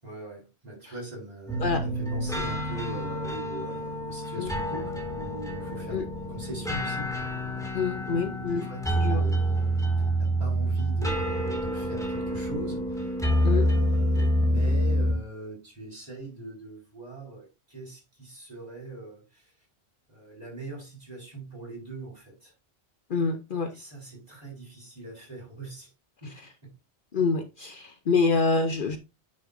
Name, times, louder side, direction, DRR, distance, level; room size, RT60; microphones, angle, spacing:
voice 1, 0.0-7.1 8.5-19.5 20.1-22.5 23.7-25.9 26.2-26.3 26.6-26.7, right 1 dB, 35° right, 5.1 m, -41 dB
sound 1, 1.5-15.1, equal, 5° left, 2.1 m, -27 dB
voice 2, 7.7-8.7 9.0-9.2 13.4-13.6 23.1-23.7 27.1-29.0, left 4 dB, 55° left, 0.8 m, -26 dB
9.7 x 6.4 x 2.6 m
omnidirectional pair, 1.1 m